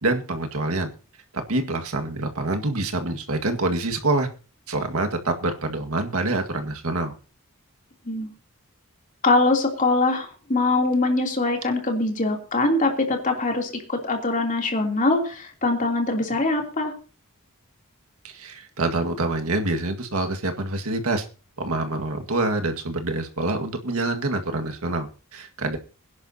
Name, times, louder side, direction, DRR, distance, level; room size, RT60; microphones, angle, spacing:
voice 1, 0.0-0.9 1.3-4.3 4.7-7.1 18.2-21.3 21.6-25.8, right 2 dB, 85° right, 4 dB, 1.9 m, -26 dB
voice 2, 9.2-16.9, left 2 dB, 35° left, 2 dB, 3.1 m, -23 dB
22.5 x 10.5 x 2.8 m, 0.35 s
head